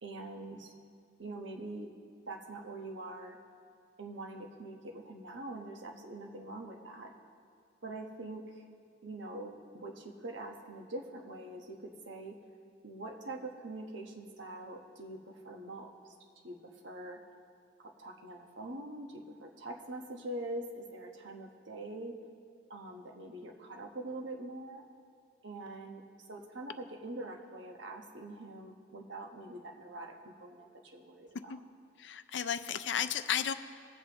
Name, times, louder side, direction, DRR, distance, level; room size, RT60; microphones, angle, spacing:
voice 1, 0.0-0.7 1.2-1.9 2.3-3.4 4.0-7.1 7.8-8.6 9.0-12.4 12.8-15.9 16.4-17.2 17.8-22.2 22.7-24.8 25.4-26.0 26.3-31.6, right 2 dB, 70° right, 1 dB, 1.2 m, -44 dB
voice 2, 32.0-33.5, left 8 dB, 65° left, 11 dB, 0.5 m, -33 dB
20.0 x 7.7 x 3.0 m, 2.2 s
head